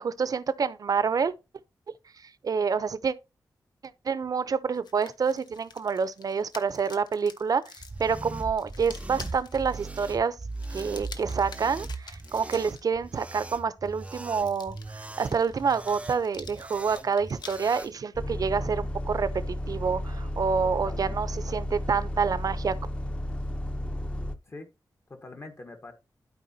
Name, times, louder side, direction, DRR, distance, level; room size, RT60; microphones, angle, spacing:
voice 1, 0.0-1.3 2.4-3.1 4.0-7.6 8.0-10.4 10.7-22.7, right 5 dB, 55° right, 0.6 m, -28 dB
sound 1, 4.7-12.8 13.9-17.6, left 5 dB, 75° left, 1.0 m, -48 dB
sound 2, 7.8-17.9, right 3 dB, 15° right, 0.4 m, -39 dB
Bus, 18.1-24.4, left 1 dB, 15° left, 0.7 m, -33 dB
voice 2, 20.6-21.2 24.4-24.7 25.1-25.9, left 2 dB, 35° left, 1.3 m, -44 dB
12.0 x 4.7 x 2.8 m
wide cardioid pair, 120°, 7 cm